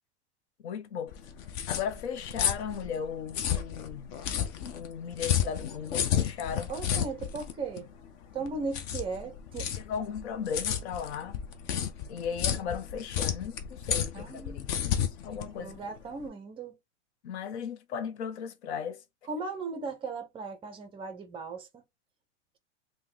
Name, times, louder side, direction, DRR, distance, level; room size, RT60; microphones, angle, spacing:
voice 1, 0.6-1.1 1.7-4.1 4.7-6.7 9.8-11.4 12.1-15.0 15.2-15.7 17.2-19.0, left 7 dB, 70° left, 0.8 m, -36 dB
sound 1, 1.1-16.3, left 9 dB, 40° left, 0.6 m, -32 dB
voice 2, 6.7-7.9 8.3-9.7 14.1-14.6 15.6-16.8 19.3-21.8, right 4 dB, 15° right, 0.6 m, -37 dB
3.4 x 2.2 x 3.2 m
supercardioid pair, 140°, 34 cm